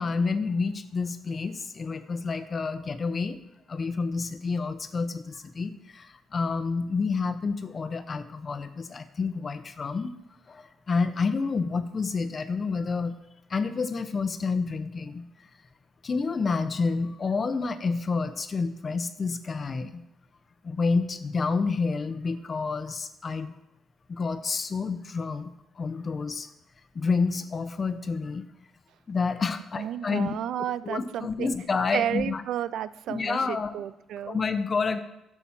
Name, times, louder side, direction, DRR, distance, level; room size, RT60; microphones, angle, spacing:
voice 1, 0.0-3.4 3.7-10.1 10.5-13.2 13.5-15.5 16.0-20.0 20.6-23.6 24.1-26.5 26.9-28.4 29.1-30.3 30.8-32.4 33.1-33.7 34.2-35.0, left 4 dB, 40° left, 10 dB, 0.8 m, -29 dB
voice 2, 29.8-31.5 31.9-34.4, right 10 dB, 80° right, 15 dB, 0.4 m, -32 dB
11.5 x 6.2 x 5.7 m, 0.90 s
cardioid pair, 90°, 0 cm